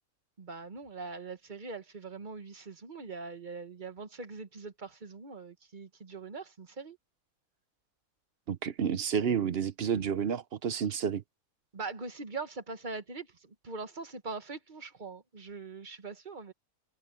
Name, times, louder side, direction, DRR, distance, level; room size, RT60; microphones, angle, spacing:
voice 1, 0.4-7.0 11.7-16.5, right 4 dB, 35° right, 1.4 m, -42 dB
voice 2, 8.5-11.2, right 7 dB, 50° right, 0.9 m, -30 dB
omnidirectional pair, 1.5 m